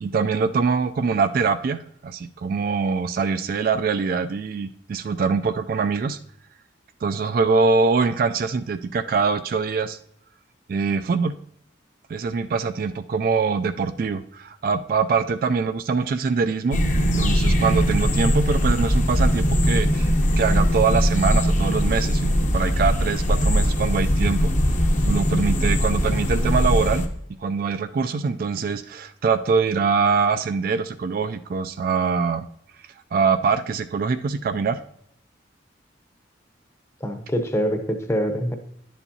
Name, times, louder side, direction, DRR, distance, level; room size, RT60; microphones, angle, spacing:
voice 1, 0.0-6.2 7.0-10.0 10.7-11.3 12.1-24.5 25.0-27.1 27.4-32.5 33.1-34.8, right 5 dB, 50° right, 10 dB, 0.3 m, -23 dB
sound 1, 16.7-27.1, equal, 40° left, 0.8 m, -20 dB
voice 2, 37.0-38.5, equal, 15° left, 6 dB, 0.7 m, -24 dB
10.5 x 7.2 x 2.8 m, 0.72 s
head